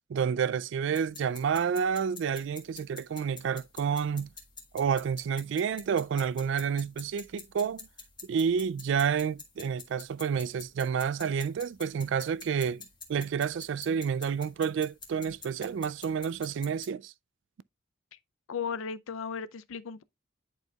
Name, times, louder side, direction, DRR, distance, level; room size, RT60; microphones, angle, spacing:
voice 1, 0.1-4.3 4.7-7.9 8.2-12.8 13.1-17.1, right 7 dB, 65° right, 0.3 m, -29 dB
sound 1, 1.0-16.9, left 5 dB, 25° left, 1.4 m, -49 dB
voice 2, 18.5-20.0, left 6 dB, 85° left, 0.5 m, -35 dB
10.5 x 4.5 x 2.3 m
head